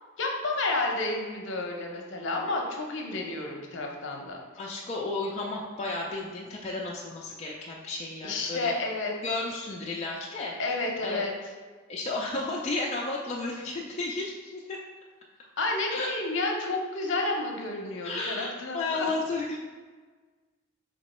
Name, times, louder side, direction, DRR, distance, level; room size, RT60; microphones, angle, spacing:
voice 1, 0.2-4.4 8.2-9.1 10.6-11.3 15.6-19.1, left 2 dB, 65° left, 1 dB, 0.7 m, -30 dB
voice 2, 4.6-8.7 9.2-10.7 11.0-11.2 11.9-14.8 15.9-16.1 18.0-19.6, left 2 dB, 30° left, -3 dB, 0.3 m, -33 dB
3.6 x 3.0 x 4.2 m, 1.4 s
head